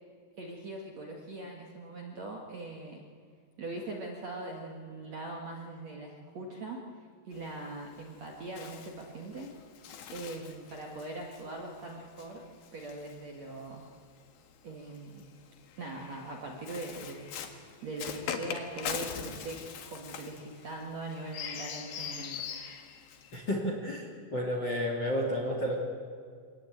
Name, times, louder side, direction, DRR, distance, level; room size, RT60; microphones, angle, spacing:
voice 1, 0.4-3.0 3.6-6.8 7.2-9.5 10.1-12.4 12.7-13.8 14.6-15.3 15.8-17.3 17.8-19.6 19.9-22.5, right 2 dB, 50° right, 0 dB, 2.3 m, -41 dB
Bird, 7.3-13.9 14.8-23.6, left 7 dB, 60° left, 3.1 m, -42 dB
voice 2, 23.3-25.8, equal, 30° left, 1 dB, 2.4 m, -31 dB
25.5 x 19.0 x 9.2 m, 2.1 s
omnidirectional pair, 5.4 m